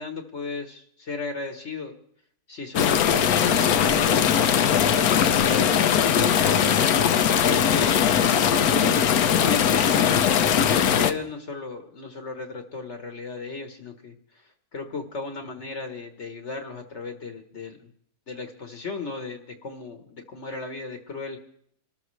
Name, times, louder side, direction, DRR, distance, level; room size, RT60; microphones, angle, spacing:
voice 1, 0.0-1.9 2.5-6.7 7.4-8.2 8.6-10.2 10.5-14.1 14.7-17.9 18.3-21.4, left 3 dB, 50° left, 6 dB, 1.5 m, -35 dB
sound 1, 2.8-11.1, left 8 dB, 70° left, 1.2 m, -20 dB
26.5 x 13.5 x 3.2 m, 0.65 s
omnidirectional pair, 1.7 m